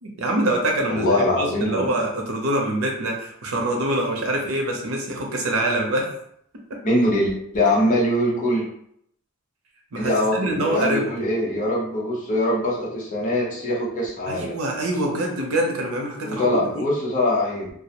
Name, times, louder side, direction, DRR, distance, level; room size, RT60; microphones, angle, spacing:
voice 1, 0.0-6.1 9.9-11.3 14.3-16.8, right 1 dB, 85° right, 1 dB, 0.6 m, -25 dB
voice 2, 0.9-1.9 6.8-8.6 10.0-14.6 16.2-17.7, left 1 dB, 40° left, -4 dB, 0.7 m, -22 dB
2.3 x 2.0 x 2.8 m, 0.70 s
head